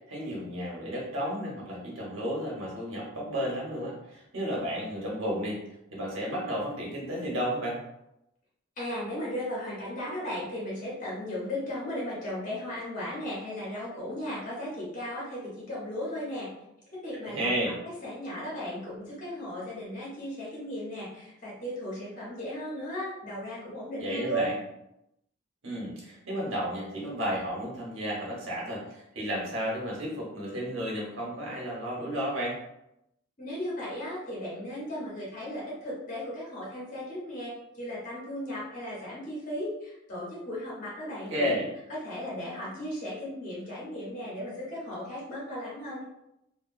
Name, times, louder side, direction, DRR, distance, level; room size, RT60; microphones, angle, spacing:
voice 1, 0.1-5.6 5.9-7.8 17.2-17.8 24.0-24.5 25.6-32.6 41.3-41.7, equal, 75° right, -4 dB, 1.1 m, -32 dB
voice 2, 8.8-16.5 16.9-24.5 33.4-41.6 41.9-46.0, equal, 40° left, -6 dB, 1.0 m, -36 dB
2.9 x 2.4 x 2.5 m, 0.84 s
head